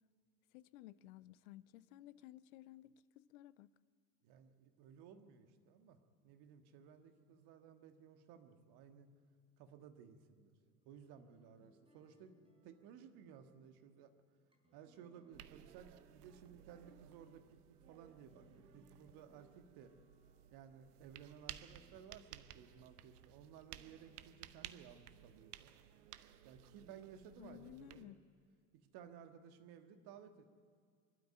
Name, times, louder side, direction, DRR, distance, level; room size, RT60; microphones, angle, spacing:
voice 1, 0.5-3.7 27.4-28.2, left 15 dB, 60° left, 0.7 m, -56 dB
voice 2, 4.2-6.0 6.2-9.1 9.6-10.5 10.8-12.3 12.6-14.1 14.7-20.0 20.5-25.7 26.4-28.2 28.9-30.4, right 8 dB, 50° right, 1.7 m, -58 dB
sound 1, 10.4-22.0, right 2 dB, 10° right, 4.4 m, -72 dB
sound 2, 15.3-28.1, right 12 dB, 70° right, 0.8 m, -57 dB
23.5 x 12.0 x 9.1 m
figure-of-eight pair, 70°, 47 cm